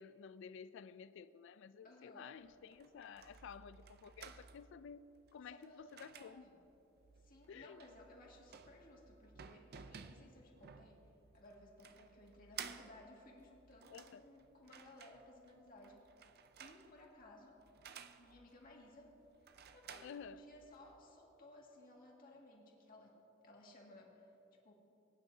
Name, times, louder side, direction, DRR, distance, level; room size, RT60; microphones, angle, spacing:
voice 1, 0.0-6.4 7.5-7.8 13.9-14.2 20.0-20.4, left 6 dB, 65° left, 0.3 m, -53 dB
voice 2, 1.8-2.3 5.5-6.6 7.2-11.1 11.3-16.0 16.6-17.9 18.2-19.5 19.7-23.2 23.4-24.3 24.6-24.7, left 1 dB, 45° left, 2.0 m, -59 dB
sound 1, 2.4-21.0, right 7 dB, 50° right, 0.5 m, -56 dB
21.0 x 10.0 x 2.8 m
head